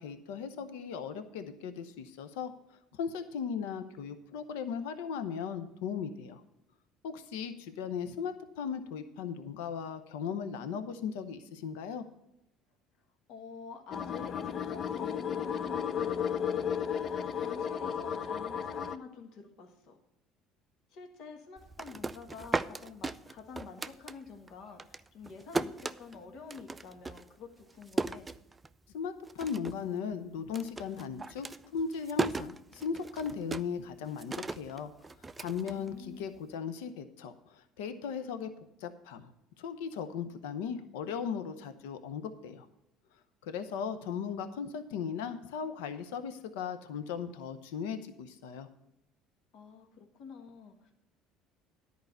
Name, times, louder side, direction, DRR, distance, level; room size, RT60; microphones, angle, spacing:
voice 1, 0.0-2.5 2.9-6.4 7.0-12.0 28.9-31.5 31.7-34.9 35.4-38.5 38.8-39.3 39.6-42.7 43.4-48.7, left 6 dB, 80° left, 10 dB, 0.7 m, -37 dB
voice 2, 13.3-16.8 17.3-20.0 20.9-28.3 35.7-36.3 49.5-50.9, left 5 dB, 65° left, 4 dB, 1.4 m, -48 dB
sound 1, 13.9-19.0, left 8 dB, 45° left, 0.6 m, -34 dB
sound 2, 21.6-24.5 24.8-28.9 29.2-29.9 30.1-36.4, right 3 dB, 20° right, 0.4 m, -37 dB
10.5 x 4.7 x 7.9 m, 0.85 s
supercardioid pair, 85°, 0 cm